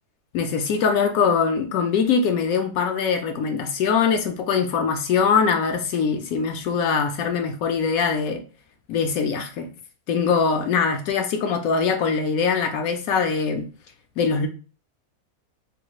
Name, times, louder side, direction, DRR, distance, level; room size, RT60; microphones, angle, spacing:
voice 1, 0.3-8.4 8.9-9.7 10.1-13.7 14.2-14.5, left 6 dB, 75° left, 1.0 m, -22 dB
3.2 x 2.3 x 2.9 m
omnidirectional pair, 1.6 m